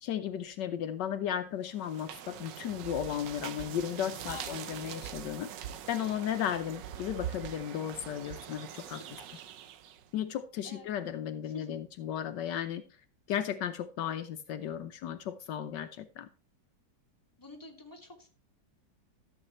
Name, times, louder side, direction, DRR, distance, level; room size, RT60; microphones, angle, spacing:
voice 1, 0.0-5.5 5.9-9.0 10.1-12.8 13.3-16.3, left 9 dB, 75° left, 9 dB, 1.3 m, -35 dB
sound 1, 1.7-10.1, right 10 dB, 80° right, 1.4 m, -43 dB
voice 2, 4.3-4.7 8.8-9.4 10.6-10.9 11.5-11.8 17.4-18.3, left 3 dB, 10° left, 0 dB, 2.0 m, -48 dB
13.5 x 7.6 x 3.1 m, 0.35 s
omnidirectional pair, 1.9 m